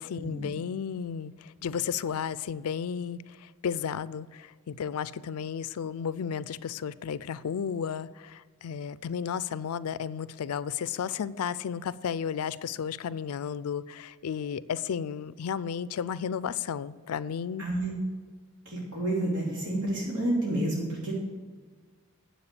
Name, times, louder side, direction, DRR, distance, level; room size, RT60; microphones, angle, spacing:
voice 1, 0.0-17.6, left 7 dB, 75° left, 18 dB, 0.4 m, -33 dB
voice 2, 17.6-17.9 18.6-21.1, right 1 dB, 85° right, -4 dB, 2.8 m, -29 dB
9.8 x 7.6 x 6.7 m, 1.5 s
head